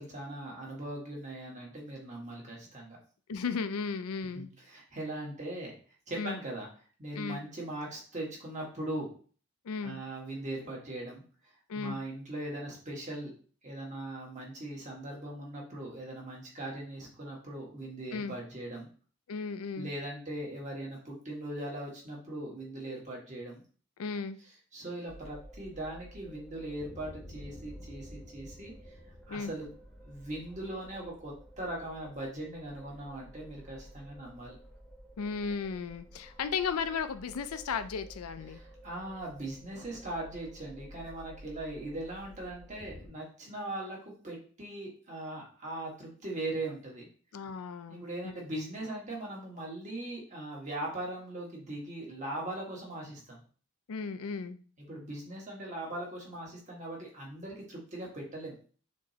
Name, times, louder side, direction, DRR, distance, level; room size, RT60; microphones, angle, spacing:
voice 1, 0.0-3.0 4.3-5.8 6.1-6.7 7.0-9.1 9.8-13.3 13.6-18.9 19.8-23.6 24.7-29.0 29.3-29.7 30.0-34.6 38.5-47.1 47.9-53.4 54.8-58.6, right 1 dB, 35° right, -2 dB, 1.5 m, -40 dB
voice 2, 3.3-4.5 6.2-6.4 7.1-7.4 9.6-10.0 11.7-12.0 18.1-18.3 19.3-19.9 24.0-24.4 29.3-29.5 35.2-38.6 47.3-48.0 53.9-54.6, left 5 dB, 80° left, 11 dB, 0.4 m, -35 dB
sound 1, 25.1-43.1, equal, ahead, 1.0 m, -51 dB
6.3 x 3.0 x 2.8 m, 0.41 s
head